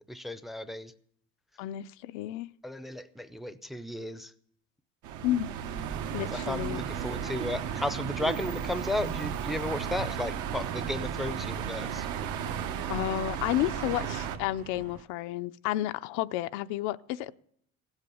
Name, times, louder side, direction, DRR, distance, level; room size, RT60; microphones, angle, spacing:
voice 1, 0.1-0.9 2.6-4.3 6.3-12.1, left 1 dB, ahead, 0.5 m, -34 dB
voice 2, 1.6-2.5 5.2-5.5 6.1-6.8 12.9-17.3, left 14 dB, 85° left, 0.6 m, -31 dB
sound 1, 5.0-14.4, right 8 dB, 80° right, 1.4 m, -34 dB
sound 2, 5.6-15.0, right 8 dB, 50° right, 1.5 m, -47 dB
16.5 x 8.2 x 6.9 m
cardioid pair, 130°, 29 cm